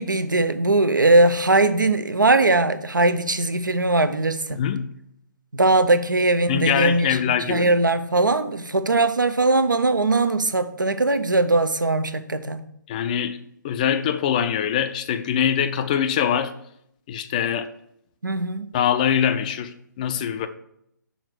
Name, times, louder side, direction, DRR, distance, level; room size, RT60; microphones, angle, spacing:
voice 1, 0.0-4.6 5.5-7.1 7.5-12.6 18.2-18.7, right 2 dB, 80° right, 0.6 m, -20 dB
voice 2, 4.5-4.9 6.5-7.7 12.9-13.4 13.6-16.5 17.1-17.7 18.7-20.5, left 9 dB, 25° left, 0.4 m, -23 dB
6.4 x 3.9 x 6.1 m
figure-of-eight pair, 135°, 10 cm